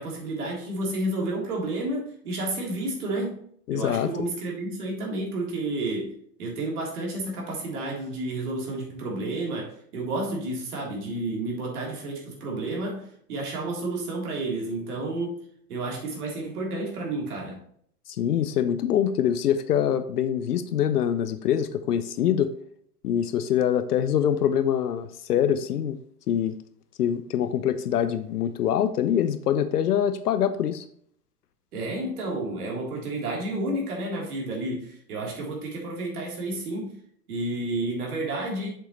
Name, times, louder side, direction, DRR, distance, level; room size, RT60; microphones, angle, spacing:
voice 1, 0.0-3.4 3.7-15.4 15.7-17.6 31.7-36.9 37.3-38.7, right 2 dB, 65° right, -2 dB, 3.5 m, -31 dB
voice 2, 3.7-4.1 18.1-22.5 23.0-26.0 26.3-26.6 27.0-30.8, left 9 dB, 70° left, 11 dB, 0.7 m, -24 dB
7.8 x 6.8 x 3.1 m, 0.63 s
hypercardioid pair, 115°, 49 cm